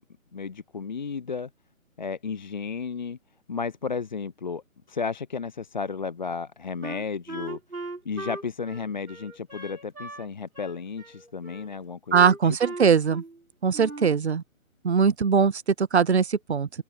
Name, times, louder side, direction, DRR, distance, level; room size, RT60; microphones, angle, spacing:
voice 1, 0.3-1.5 2.0-3.2 3.5-4.6 4.9-7.6 8.0-12.6, left 5 dB, 35° left, 0.7 m, -33 dB
Wind instrument woodwind instrument, 6.8-10.3 10.5-11.7 12.1-13.4 13.7-14.2, right 2 dB, 80° right, 4.4 m, -39 dB
voice 2, 12.1-13.2 13.6-14.4 14.8-16.8, right 6 dB, 50° right, 1.1 m, -21 dB
open air
figure-of-eight pair, 140°, 42 cm